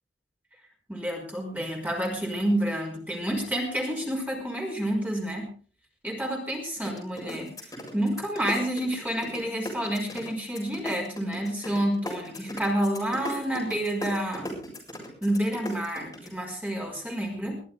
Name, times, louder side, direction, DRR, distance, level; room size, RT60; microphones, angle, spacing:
voice 1, 0.9-5.5 6.0-7.5 7.9-14.6 15.2-17.6, right 1 dB, 10° right, 0 dB, 5.5 m, -29 dB
sound 1, 6.8-9.4 9.6-16.3, equal, 20° left, 7.2 m, -37 dB
22.5 x 14.5 x 3.5 m, 0.40 s
head